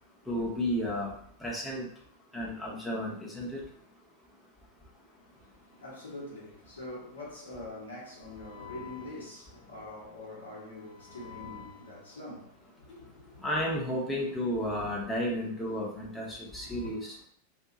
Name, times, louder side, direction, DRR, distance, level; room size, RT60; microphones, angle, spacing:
voice 1, 0.3-1.1 1.4-1.9 2.3-3.6 13.4-17.2, equal, 5° left, 0.8 m, -32 dB
voice 2, 5.2-13.5 16.5-16.9, left 2 dB, 70° left, 1.1 m, -44 dB
2.7 x 2.3 x 3.7 m
figure-of-eight pair, 90°, 0 cm